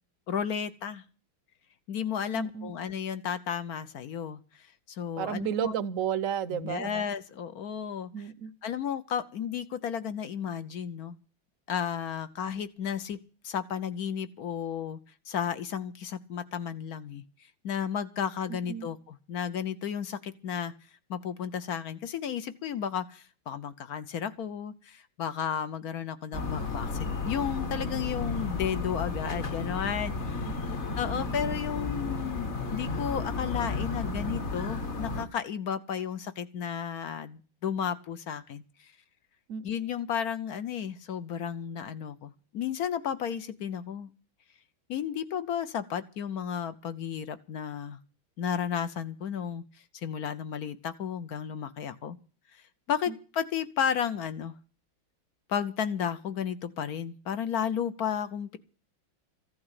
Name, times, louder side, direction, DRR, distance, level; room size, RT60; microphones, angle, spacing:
voice 1, 0.3-1.0 1.9-5.7 6.5-8.1 8.6-11.2 11.7-13.2 13.4-15.0 15.3-17.2 17.6-20.7 21.1-30.5 31.0-38.9 39.6-44.1 44.9-48.0 48.4-49.6 49.9-52.2 52.5-52.6 52.9-54.5 55.5-58.6, left 8 dB, 60° left, 12 dB, 1.1 m, -33 dB
voice 2, 2.3-2.7 5.2-6.9 8.1-8.5 18.5-18.9 30.4-30.6 39.5-39.6 53.1-53.2, right 9 dB, 55° right, 14 dB, 1.0 m, -32 dB
sound 1, 26.3-35.3, left 3 dB, 40° left, 1.5 m, -33 dB
15.0 x 8.7 x 8.2 m, 0.39 s
omnidirectional pair, 2.1 m